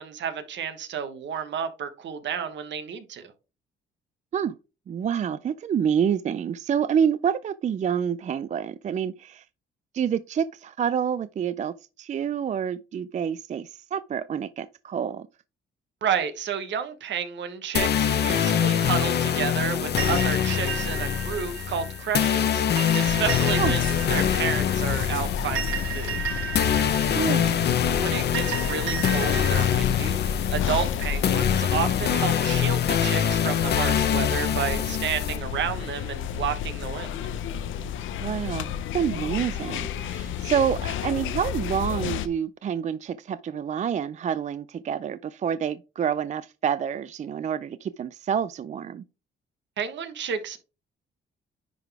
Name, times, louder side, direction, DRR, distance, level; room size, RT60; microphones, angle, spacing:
voice 1, 0.0-3.3 16.0-26.2 28.0-37.1 49.8-50.6, right 7 dB, 65° right, 1.1 m, -31 dB
voice 2, 4.9-9.4 9.9-15.3 23.6-23.7 27.1-27.7 38.2-49.0, right 8 dB, 35° right, 0.4 m, -28 dB
sound 1, 17.7-35.4, left 9 dB, 55° left, 0.9 m, -24 dB
sound 2, 20.0-29.8, right 7 dB, 90° right, 4.1 m, -34 dB
sound 3, 23.0-42.3, left 9 dB, 80° left, 0.6 m, -31 dB
10.5 x 3.9 x 3.4 m
cardioid pair, 90°, 20 cm